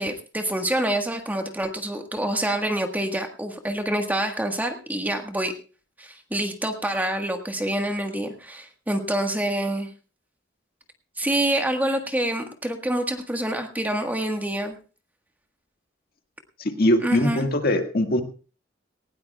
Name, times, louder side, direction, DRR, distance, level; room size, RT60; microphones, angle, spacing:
voice 1, 0.0-5.6 6.0-9.9 11.2-14.8 17.0-17.5, right 1 dB, 10° right, 4 dB, 1.5 m, -26 dB
voice 2, 16.6-18.2, left 1 dB, 50° left, 6 dB, 1.8 m, -22 dB
19.0 x 17.5 x 2.3 m, 0.36 s
head